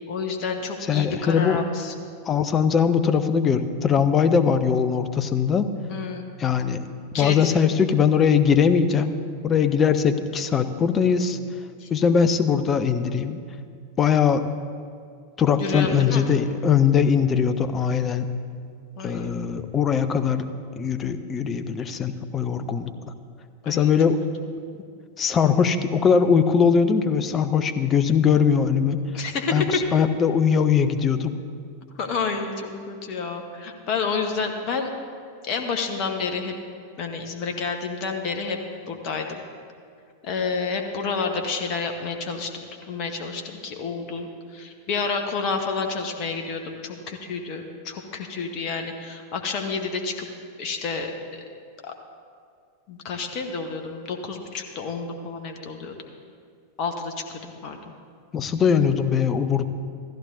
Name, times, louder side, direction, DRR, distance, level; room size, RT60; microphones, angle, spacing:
voice 1, 0.1-2.0 5.9-6.3 7.1-7.5 11.8-11.9 15.6-16.3 19.0-19.3 23.6-23.9 29.1-29.8 32.0-34.9 35.4-36.5 37.0-38.6 38.9-39.4 40.2-42.5 42.9-50.3 50.6-51.4 51.8-51.9 52.9-55.9 56.8-57.8, left 4 dB, 40° left, 4 dB, 1.1 m, -29 dB
voice 2, 0.9-1.6 2.3-5.7 6.4-6.8 7.2-11.4 11.9-13.4 14.0-14.5 15.4-18.3 19.0-20.5 20.8-22.9 23.7-24.2 25.2-29.0 29.5-31.3 58.3-59.7, left 7 dB, 25° left, 11 dB, 0.6 m, -21 dB
15.5 x 14.0 x 2.7 m, 2.2 s
figure-of-eight pair, 90°, 0 cm